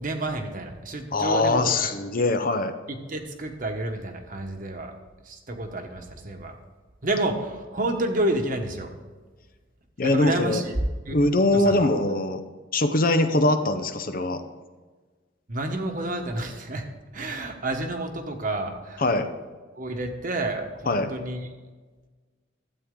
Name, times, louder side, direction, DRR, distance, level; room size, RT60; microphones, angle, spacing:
voice 1, 0.0-1.9 2.2-2.3 2.9-4.9 5.2-6.5 7.0-8.9 10.0-10.7 11.0-11.2 11.5-11.9 15.5-16.9 17.1-19.1 19.7-21.4, right 2 dB, 45° right, 5 dB, 1.2 m, -30 dB
voice 2, 1.1-2.7 10.0-10.6 11.1-12.4 12.7-14.4 19.0-19.3 20.9-21.1, left 2 dB, 45° left, 8 dB, 0.7 m, -22 dB
12.5 x 8.6 x 3.8 m, 1.3 s
head